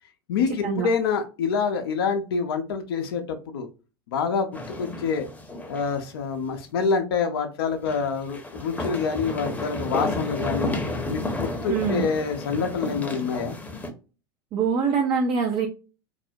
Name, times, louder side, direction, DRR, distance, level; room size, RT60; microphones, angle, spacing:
voice 1, 0.3-3.7 4.1-5.3 5.7-10.8 11.1-13.6, left 5 dB, 70° left, 6 dB, 0.4 m, -26 dB
sound 1, 4.5-6.1 6.4-6.5 7.8-13.9, left 2 dB, 10° left, 0.7 m, -32 dB
voice 2, 11.7-12.1 14.5-15.7, right 6 dB, 40° right, 3 dB, 0.4 m, -24 dB
2.4 x 2.0 x 2.6 m, 0.33 s
figure-of-eight pair, 80°, 13 cm